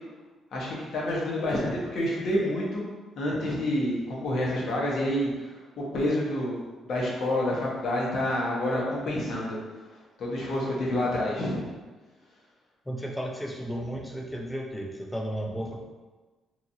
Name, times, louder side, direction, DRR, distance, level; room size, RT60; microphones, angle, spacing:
voice 1, 0.5-2.8 3.2-6.6 6.8-9.6 10.2-11.7, left 1 dB, 65° left, -4 dB, 0.9 m, -28 dB
voice 2, 12.9-15.8, equal, 10° left, 0 dB, 0.5 m, -34 dB
2.9 x 2.5 x 2.6 m, 1.2 s
cardioid pair, 90°, 0 cm